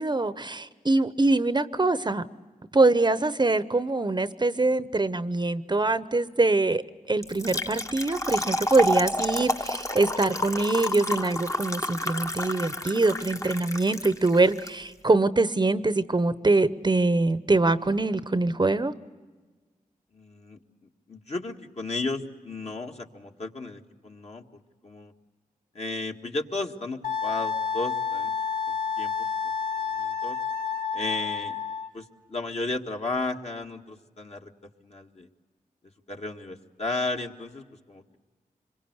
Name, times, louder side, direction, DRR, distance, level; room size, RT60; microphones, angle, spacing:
voice 1, 0.0-2.3 2.7-18.9, right 2 dB, 30° right, 13 dB, 0.8 m, -24 dB
Trickle dribble / Fill (with liquid), 7.2-14.7, left 1 dB, 20° left, 1.1 m, -30 dB
voice 2, 20.1-20.6 21.1-24.4 24.8-25.1 25.8-28.3 28.7-29.1 29.8-30.4 30.9-31.6 31.9-34.5 34.8-35.3 36.1-38.2, left 3 dB, 50° left, 2 dB, 1.8 m, -34 dB
Wind instrument woodwind instrument, 27.0-31.9, left 6 dB, 75° left, 2.8 m, -30 dB
26.0 x 22.5 x 8.1 m, 1.4 s
cardioid pair, 55°, 14 cm